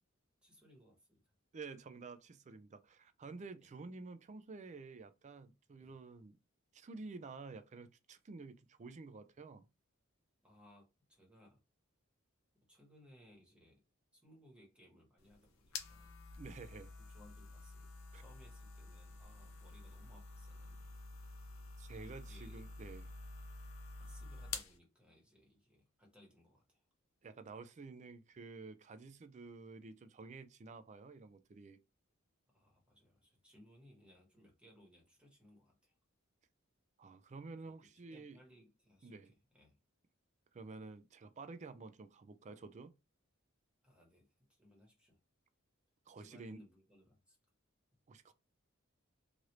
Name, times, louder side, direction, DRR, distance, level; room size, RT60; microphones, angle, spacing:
voice 1, 0.4-1.3 3.6-3.7 5.8-5.9 10.4-11.6 12.5-13.8 14.1-16.1 17.0-21.0 22.0-22.7 24.0-26.9 32.5-35.9 37.6-39.8 43.8-45.2 46.2-47.4, equal, 5° right, 1.2 m, -64 dB
voice 2, 1.5-6.4 6.7-9.7 16.4-16.9 18.1-18.2 21.8-23.0 27.2-31.8 37.0-38.4 39.0-39.3 40.5-42.9 46.1-46.6 48.1-48.3, right 3 dB, 35° right, 0.4 m, -50 dB
sound 1, 15.2-24.8, left 4 dB, 85° left, 0.7 m, -49 dB
3.2 x 2.5 x 2.9 m
head